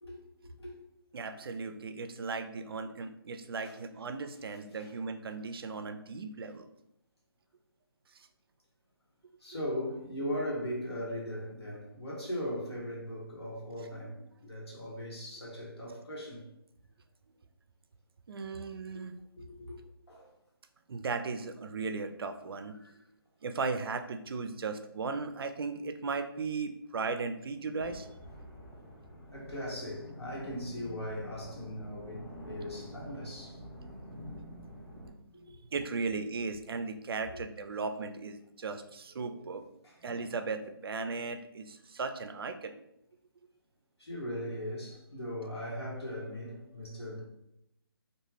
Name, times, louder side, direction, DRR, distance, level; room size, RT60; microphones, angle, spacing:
voice 1, 0.0-0.8 3.6-4.1 4.5-4.9 9.4-16.4 18.5-18.6 18.9-19.8 20.1-20.3 22.8-22.9 29.3-33.6 35.3-35.5 36.0-36.1 37.2-37.4 39.8-40.2 44.0-47.2, equal, 90° left, 1.3 m, -39 dB
voice 2, 1.1-6.7 18.3-19.1 20.9-22.7 23.4-28.1 34.1-35.3 35.7-39.6 40.0-42.8, right 4 dB, 65° right, 0.4 m, -37 dB
sound 1, 27.8-35.1, equal, 15° left, 0.5 m, -47 dB
2.5 x 2.3 x 3.2 m
figure-of-eight pair, 155°, 13 cm